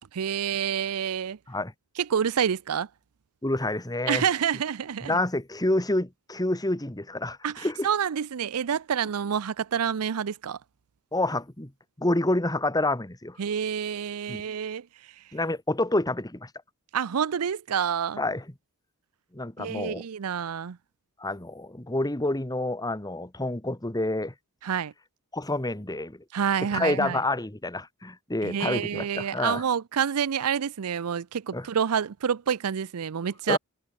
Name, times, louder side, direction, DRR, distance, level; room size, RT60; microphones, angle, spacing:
voice 1, 0.1-1.4 2.0-2.9 4.1-5.2 7.4-10.6 13.4-14.9 16.9-18.2 19.6-20.8 24.6-24.9 26.3-27.2 28.4-33.6, right 8 dB, 80° right, 0.5 m, -28 dB
voice 2, 3.4-4.2 5.0-7.9 11.1-11.7 12.0-13.4 14.3-14.4 15.3-16.5 18.2-18.4 19.3-20.0 21.2-24.3 25.3-26.2 26.7-29.6 31.5-31.7 33.5-33.6, left 2 dB, 15° left, 1.8 m, -28 dB
head